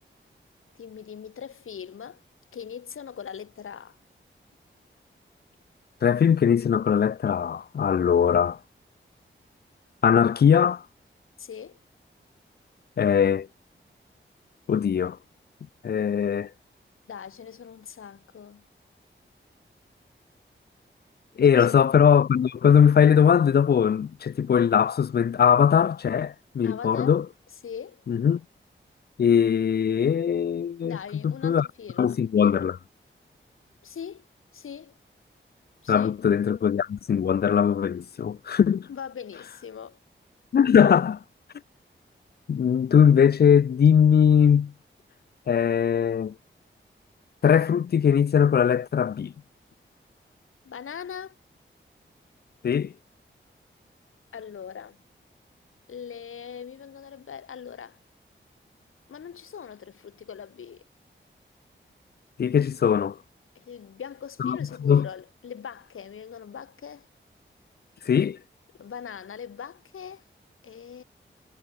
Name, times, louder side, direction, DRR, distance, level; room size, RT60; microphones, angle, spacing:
voice 1, 0.7-2.2 2.5-4.0 11.4-11.8 17.1-18.6 21.5-21.8 26.6-27.1 27.6-28.0 30.8-32.2 33.8-34.3 34.5-34.9 35.8-36.2 38.9-40.0 50.6-51.4 54.3-55.0 55.9-58.0 59.1-60.8 63.5-67.1 68.8-70.2 70.6-71.0, left 7 dB, 85° left, 1.0 m, -41 dB
voice 2, 6.0-8.6 10.0-10.8 13.0-13.5 14.7-15.2 15.8-16.5 21.4-27.3 28.1-28.4 29.2-31.0 31.2-31.7 32.0-32.8 35.9-38.9 40.5-41.2 42.5-44.7 45.5-46.3 47.4-49.3 52.6-52.9 62.4-63.2 64.4-65.1 68.1-68.4, left 7 dB, 50° left, 0.4 m, -20 dB
wide cardioid pair, 75°, 21 cm